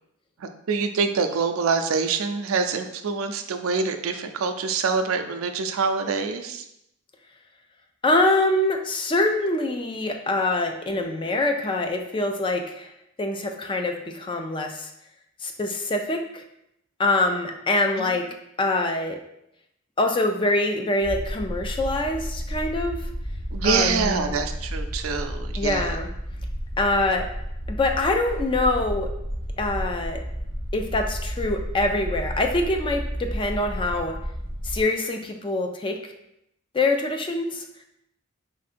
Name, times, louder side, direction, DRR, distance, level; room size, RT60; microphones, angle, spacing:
voice 1, 0.4-6.7 17.9-18.2 23.5-25.9, right 5 dB, 90° right, 7 dB, 0.4 m, -25 dB
voice 2, 8.0-12.9 13.2-14.9 15.4-16.4 17.0-18.2 18.6-19.2 20.0-23.0 23.6-24.3 25.6-26.1 26.8-27.3 27.7-29.1 29.6-30.2 30.7-34.1 34.6-36.0 36.7-37.6, left 2 dB, 25° left, 4 dB, 0.4 m, -24 dB
sound 1, 21.0-34.8, equal, 70° left, 1.5 m, -32 dB
3.6 x 2.6 x 4.2 m, 0.79 s
head